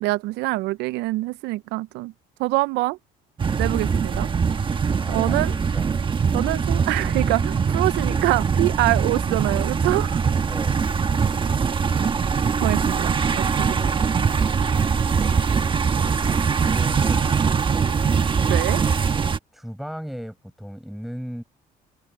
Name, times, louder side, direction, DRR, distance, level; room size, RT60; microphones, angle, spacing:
voice 1, 0.0-2.1 2.4-3.0 3.6-4.3 5.1-5.5 6.3-10.2 12.6-13.8 18.5-18.8, right 20 dB, 90° right, 0.4 m, -25 dB
sound 1, 3.4-19.4, right 6 dB, 30° right, 1.2 m, -22 dB
voice 2, 5.0-6.0 10.2-10.8 15.9-17.3 19.5-21.4, equal, ahead, 4.8 m, -37 dB
cardioid pair, 110°, 17 cm